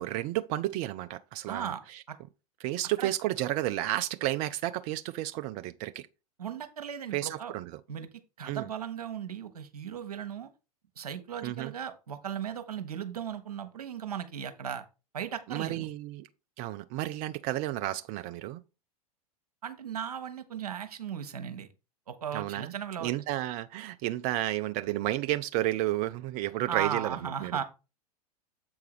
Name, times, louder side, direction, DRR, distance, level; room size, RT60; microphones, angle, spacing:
voice 1, 0.0-2.0 2.6-6.1 7.1-7.8 8.5-8.7 11.4-11.7 15.5-16.3 16.6-18.6 22.3-22.7 23.0-27.2 27.4-27.5, right 15 dB, 35° right, 0.4 m, -32 dB
voice 2, 1.5-1.8 2.1-2.2 3.0-3.1 6.4-7.5 7.9-8.1 8.4-10.5 11.0-14.8 15.1-15.9 19.6-21.7 22.1-23.1 26.7-27.6, right 8 dB, 70° right, 1.1 m, -36 dB
7.9 x 4.7 x 4.7 m
figure-of-eight pair, 95°, 20 cm